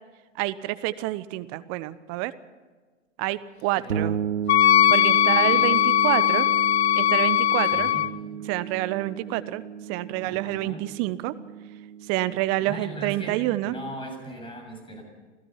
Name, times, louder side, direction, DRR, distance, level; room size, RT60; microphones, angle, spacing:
voice 1, 0.3-2.3 3.2-4.2 4.9-6.5 6.9-7.9 8.5-9.6 9.9-11.3 12.1-13.8, right 17 dB, 40° right, 15 dB, 1.1 m, -28 dB
voice 2, 3.8-4.1 5.3-5.8 7.7-8.2 10.3-10.9 12.6-15.0, right 1 dB, 15° left, 3 dB, 7.4 m, -39 dB
sound 1, 3.9-13.5, right 8 dB, 85° right, 0.8 m, -34 dB
Wind instrument woodwind instrument, 4.5-8.1, left 13 dB, 60° left, 0.6 m, -20 dB
28.0 x 16.5 x 5.8 m, 1.4 s
figure-of-eight pair, 95°, 37 cm